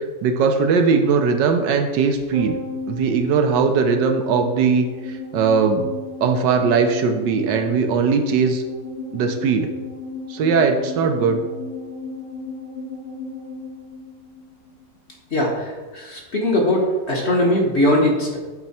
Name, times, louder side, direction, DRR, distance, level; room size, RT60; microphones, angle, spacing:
voice 1, 0.2-2.6 2.9-4.9 5.3-5.9 6.2-8.6 9.1-9.7 10.3-11.4, right 5 dB, 75° right, 5 dB, 1.3 m, -19 dB
sound 1, 2.3-14.9 15.1-15.2, left 3 dB, 70° left, 2.4 m, -34 dB
voice 2, 15.3-18.4, left 1 dB, 40° left, -1 dB, 1.3 m, -20 dB
9.5 x 4.4 x 4.2 m, 1.3 s
omnidirectional pair, 1.9 m